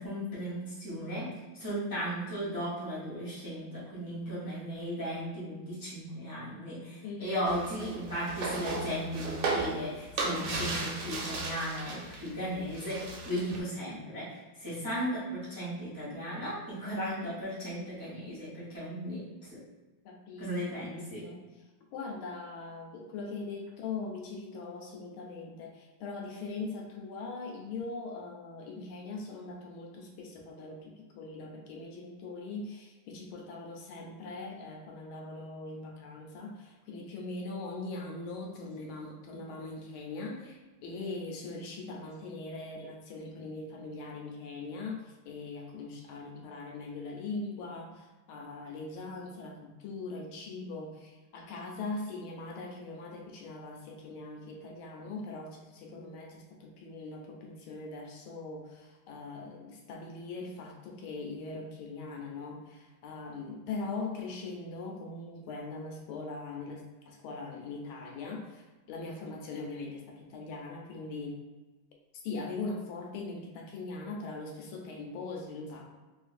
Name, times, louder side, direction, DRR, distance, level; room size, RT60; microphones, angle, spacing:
voice 1, 0.0-19.6 20.4-21.3, equal, 20° right, -10 dB, 0.5 m, -36 dB
voice 2, 7.0-7.5 20.0-20.7 20.9-21.4 21.9-71.4 72.2-75.9, left 3 dB, 75° left, 0 dB, 1.3 m, -41 dB
sound 1, 7.4-12.3 12.6-13.6, right 3 dB, 85° right, 1.5 m, -35 dB
3.1 x 3.1 x 2.4 m, 1.2 s
omnidirectional pair, 2.3 m